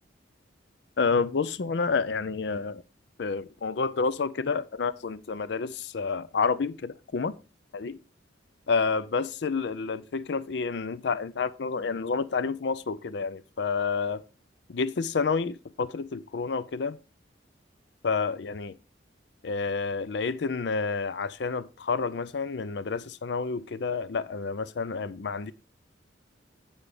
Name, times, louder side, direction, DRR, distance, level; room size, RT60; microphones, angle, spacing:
voice 1, 1.0-2.8 3.2-7.3 7.7-8.0 8.7-14.2 14.7-17.0 18.0-18.7 19.4-25.5, left 4 dB, 65° left, 0.5 m, -29 dB
8.9 x 5.4 x 4.8 m
head